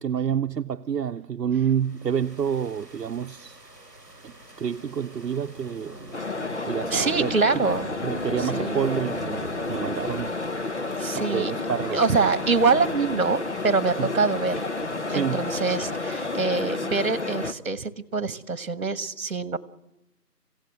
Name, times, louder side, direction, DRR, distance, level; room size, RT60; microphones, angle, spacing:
voice 1, 0.0-3.6 4.2-6.0 6.7-7.6 8.0-10.3 11.1-12.0 14.0-14.1 15.1-15.5, right 8 dB, 80° right, 0.7 m, -28 dB
sound 1, 1.7-16.4, right 1 dB, 5° left, 5.2 m, -43 dB
sound 2, 6.1-17.5, left 3 dB, 45° left, 1.0 m, -31 dB
voice 2, 6.9-7.9 8.4-8.8 11.0-11.5 11.9-14.6 15.1-19.6, right 4 dB, 55° right, 1.5 m, -25 dB
26.0 x 16.5 x 7.8 m
figure-of-eight pair, 170°, 49 cm